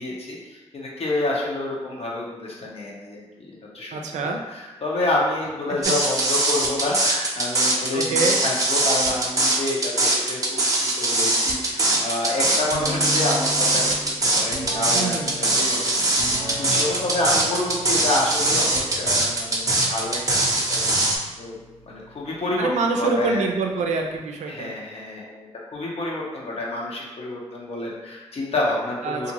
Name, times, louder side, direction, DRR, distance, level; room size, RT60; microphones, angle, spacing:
voice 1, 0.0-16.0 16.6-21.6 21.8-23.4 24.5-29.3, left 2 dB, 60° left, -3 dB, 0.8 m, -28 dB
voice 2, 3.9-4.4 7.9-8.4 14.9-15.3 22.6-24.8 29.0-29.3, right 3 dB, 85° right, 2 dB, 0.4 m, -25 dB
sound 1, 5.8-21.2, right 2 dB, 30° right, 0.6 m, -21 dB
sound 2, 12.7-24.2, left 1 dB, 30° left, 0.9 m, -37 dB
2.6 x 2.5 x 2.9 m, 1.2 s
cardioid pair, 55°, 12 cm